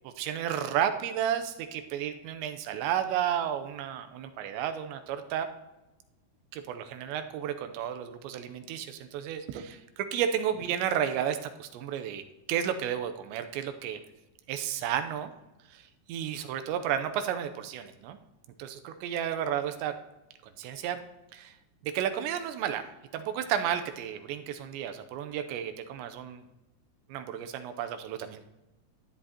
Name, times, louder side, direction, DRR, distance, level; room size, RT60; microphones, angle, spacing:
voice 1, 0.0-5.5 6.5-12.2 12.5-14.0 14.5-15.3 15.7-18.2 18.6-19.9 20.6-21.0 21.3-21.5 21.8-26.4 27.1-28.4, right 9 dB, 90° right, 8 dB, 3.0 m, -32 dB
13.5 x 10.0 x 2.8 m, 0.99 s
omnidirectional pair, 5.0 m